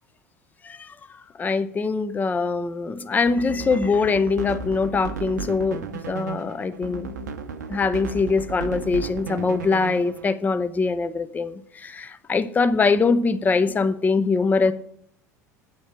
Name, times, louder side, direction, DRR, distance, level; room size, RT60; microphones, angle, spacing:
voice 1, 1.4-7.1 7.7-14.7, left 4 dB, 20° left, 12 dB, 0.5 m, -23 dB
sound 1, 3.2-10.3, right 4 dB, 75° right, 0.6 m, -34 dB
9.0 x 4.4 x 7.2 m, 0.65 s
figure-of-eight pair, 75°, 9 cm